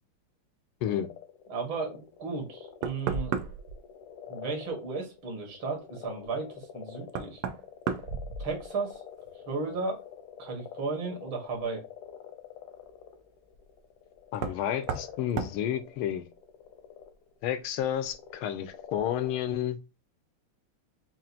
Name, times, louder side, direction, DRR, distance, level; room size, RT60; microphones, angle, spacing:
sound 1, 0.9-19.6, left 9 dB, 65° left, 1.1 m, -47 dB
voice 1, 1.5-3.3 4.3-7.4 8.4-9.0 9.5-10.0 10.4-11.8, right 4 dB, 65° right, 2.3 m, -34 dB
Knock, 2.4-2.5 2.8-3.8 6.2-6.3 7.1-8.9 9.3-9.8 11.5-11.6 14.3-14.6 14.9-15.1 15.4-15.6, right 6 dB, 85° right, 1.5 m, -33 dB
voice 2, 14.3-16.2 17.4-19.8, left 10 dB, 85° left, 1.5 m, -31 dB
5.6 x 2.5 x 2.5 m
omnidirectional pair, 2.3 m